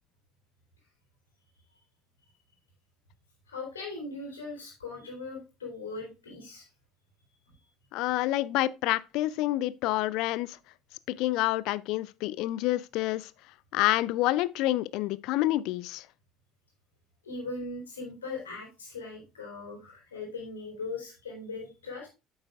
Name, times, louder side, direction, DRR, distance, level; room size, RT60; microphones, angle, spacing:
voice 1, 3.5-6.7 17.2-22.1, left 3 dB, 80° left, 3.3 m, -39 dB
voice 2, 7.9-10.6 11.1-13.3 13.7-16.1, left 16 dB, 60° left, 0.4 m, -28 dB
9.0 x 7.3 x 2.4 m
figure-of-eight pair, 60°, 0 cm